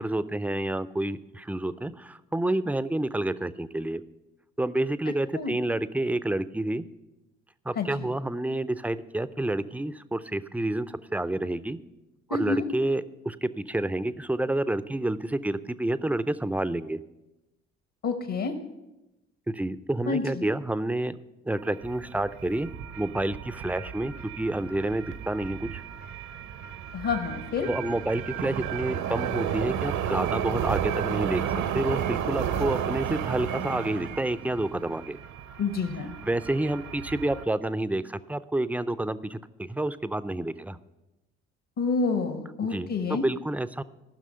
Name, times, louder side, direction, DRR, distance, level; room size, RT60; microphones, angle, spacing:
voice 1, 0.0-4.0 4.6-6.8 7.7-11.8 12.3-17.0 19.5-21.2 21.4-22.7 23.0-25.8 27.7-35.2 36.2-40.8 42.7-43.8, right 1 dB, 5° right, 15 dB, 0.4 m, -29 dB
voice 2, 7.8-8.1 12.3-12.6 18.0-18.5 20.1-20.4 26.9-27.7 35.6-36.1 41.8-43.2, left 4 dB, 55° left, 6 dB, 1.1 m, -28 dB
sound 1, 21.6-37.4, right 9 dB, 55° right, 0.7 m, -33 dB
14.0 x 6.1 x 5.5 m, 0.99 s
hypercardioid pair, 55°, 33 cm